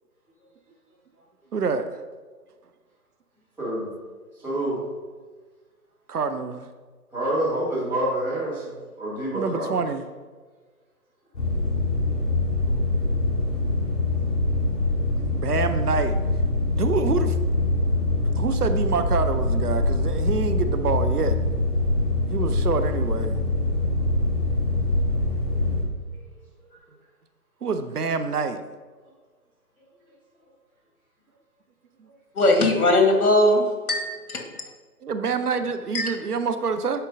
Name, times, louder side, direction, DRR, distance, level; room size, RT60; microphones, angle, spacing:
voice 1, 1.5-2.0 6.1-6.7 9.3-10.1 15.3-16.2 16.7-17.4 18.3-21.4 22.3-23.4 27.6-28.6 35.0-37.0, right 5 dB, 75° right, 8 dB, 0.7 m, -26 dB
voice 2, 3.6-3.9 4.4-4.8 7.1-9.8, right 1 dB, 5° right, -12 dB, 1.3 m, -27 dB
sound 1, 11.3-25.8, left 2 dB, 35° left, 1.8 m, -24 dB
voice 3, 32.3-34.6 35.9-36.2, left 1 dB, 65° left, 3 dB, 1.3 m, -20 dB
9.8 x 4.5 x 2.5 m, 1.4 s
figure-of-eight pair, 140°, 46 cm